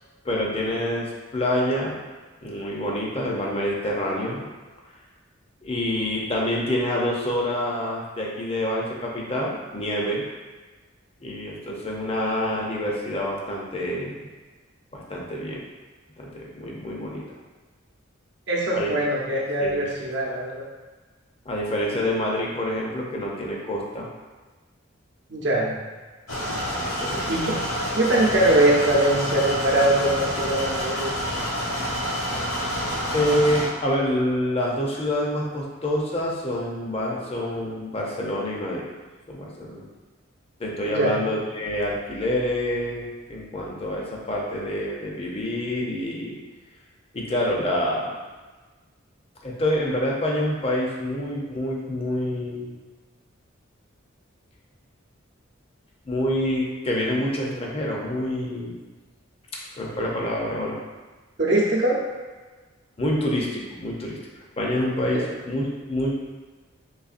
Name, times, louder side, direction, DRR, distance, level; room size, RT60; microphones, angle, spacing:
voice 1, 0.2-2.0 2.4-4.4 5.6-10.2 11.2-14.3 14.9-15.6 16.2-17.2 18.7-18.9 19.6-19.8 21.5-24.1 26.8-27.3 33.1-38.9 39.3-39.9 40.6-46.4 47.1-48.2 49.4-52.8 56.1-58.8 59.8-60.8 63.0-64.2 64.6-66.1, left 1 dB, 30° left, -2 dB, 0.6 m, -27 dB
voice 2, 18.5-20.6 25.3-25.8 27.3-27.5 27.9-31.1 40.8-41.3 61.4-62.0 65.1-65.2, right 1 dB, 55° right, -4 dB, 0.8 m, -22 dB
sound 1, 26.3-33.7, equal, 80° left, 1.4 m, -28 dB
4.0 x 3.2 x 2.5 m, 1.3 s
head